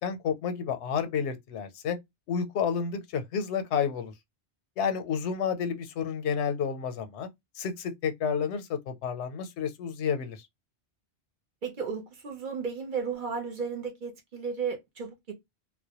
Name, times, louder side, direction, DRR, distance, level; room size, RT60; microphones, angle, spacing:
voice 1, 0.0-2.0 2.3-4.1 4.8-7.3 7.6-10.5, left 7 dB, 90° left, 0.9 m, -30 dB
voice 2, 11.6-15.3, right 6 dB, 55° right, 0.7 m, -34 dB
2.1 x 2.1 x 2.8 m
omnidirectional pair, 1.1 m